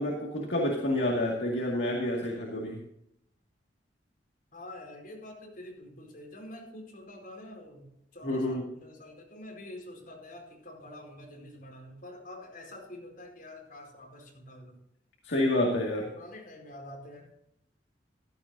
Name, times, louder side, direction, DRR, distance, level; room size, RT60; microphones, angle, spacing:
voice 1, 0.0-2.8 8.2-8.6 15.2-16.1, left 1 dB, 70° left, -2 dB, 2.1 m, -28 dB
voice 2, 4.5-14.8 16.1-17.3, left 1 dB, 55° left, 0 dB, 4.7 m, -46 dB
15.5 x 12.5 x 2.7 m, 0.77 s
head